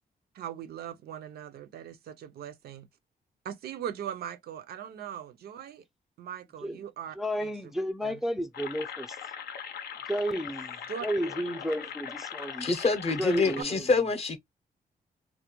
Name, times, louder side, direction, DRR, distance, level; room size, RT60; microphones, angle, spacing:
voice 1, 0.3-2.9 3.4-5.8 6.2-7.1 7.4-7.5 8.0-8.2 10.9-11.1 13.6-13.7, right 9 dB, 85° right, 0.5 m, -39 dB
voice 2, 7.1-9.2 10.1-12.7 13.2-13.9, equal, ahead, 0.3 m, -32 dB
sound 1, 8.5-13.6, left 8 dB, 85° left, 0.5 m, -40 dB
voice 3, 12.6-14.4, left 4 dB, 40° left, 0.6 m, -26 dB
2.3 x 2.1 x 2.9 m
cardioid pair, 95°, 16 cm